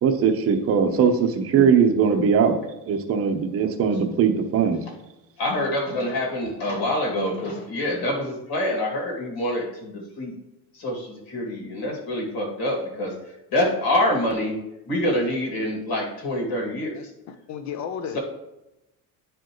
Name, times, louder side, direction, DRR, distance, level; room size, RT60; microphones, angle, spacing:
voice 1, 0.0-2.6 2.9-4.8, right 6 dB, 35° right, 4 dB, 0.8 m, -20 dB
voice 2, 5.4-10.4 10.7-17.1 18.1-18.2, left 1 dB, 65° left, -1 dB, 2.3 m, -26 dB
voice 3, 16.9-18.2, left 7 dB, 45° left, 8 dB, 0.8 m, -34 dB
10.5 x 4.7 x 3.1 m, 0.92 s
cardioid pair, 150°, 39 cm